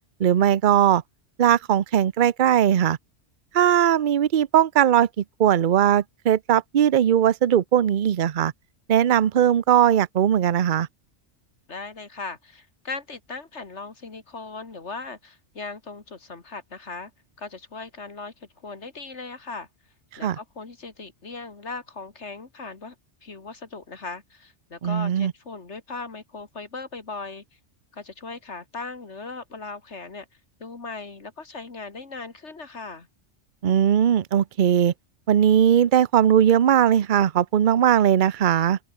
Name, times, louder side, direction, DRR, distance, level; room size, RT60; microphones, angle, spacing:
voice 1, 0.2-1.0 1.4-3.0 3.5-8.5 8.9-10.9 20.2-20.4 24.8-25.3 33.6-34.9 35.3-38.8, right 10 dB, 50° right, 0.8 m, -19 dB
voice 2, 11.7-17.1 17.4-19.7 20.2-22.9 23.2-27.4 27.9-30.3 30.6-33.1, left 4 dB, 75° left, 2.8 m, -38 dB
open air
omnidirectional pair, 1.2 m